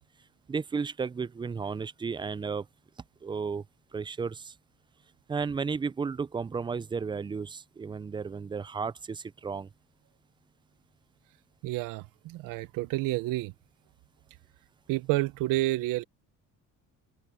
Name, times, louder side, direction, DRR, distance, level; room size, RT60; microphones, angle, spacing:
voice 1, 0.5-2.7 3.2-3.6 3.9-4.5 5.3-9.7, right 5 dB, 15° right, 0.4 m, -33 dB
voice 2, 11.6-13.5 14.9-16.0, right 18 dB, 85° right, 0.9 m, -29 dB
cardioid pair, 135°, 32 cm